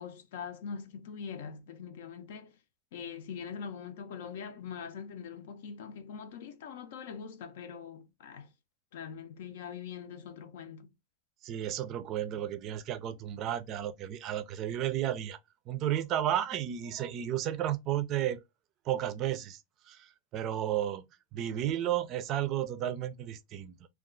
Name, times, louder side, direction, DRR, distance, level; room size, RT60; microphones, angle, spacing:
voice 1, 0.0-2.6 2.9-8.5 8.9-10.9, left 6 dB, 75° left, 0.6 m, -43 dB
voice 2, 11.4-15.4 15.7-18.4 18.9-19.6 19.9-21.0 21.3-23.7, right 11 dB, 40° right, 0.4 m, -33 dB
2.3 x 2.3 x 3.7 m
supercardioid pair, 140°, 0 cm